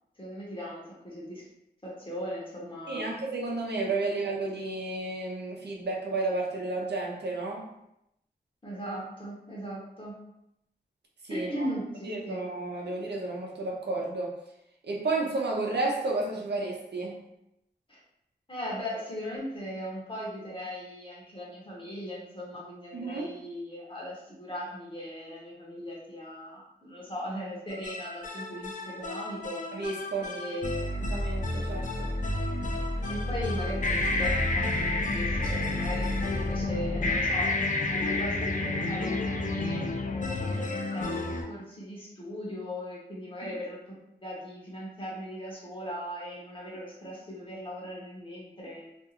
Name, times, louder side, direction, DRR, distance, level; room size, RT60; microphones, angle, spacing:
voice 1, 0.2-1.5 1.8-3.2 8.6-10.1 11.3-12.4 17.9-18.0 18.5-29.6 30.2-31.1 33.1-37.5 37.9-48.9, equal, 30° left, -5 dB, 0.8 m, -38 dB
voice 2, 2.9-7.7 11.2-11.7 12.0-14.4 14.8-17.2 22.9-23.3 29.7-30.6 31.1-32.1, right 3 dB, 80° right, -2 dB, 0.6 m, -32 dB
sound 1, 27.7-41.4, left 2 dB, 50° left, 0.4 m, -30 dB
2.5 x 2.3 x 2.9 m, 0.82 s
wide cardioid pair, 85°, 17 cm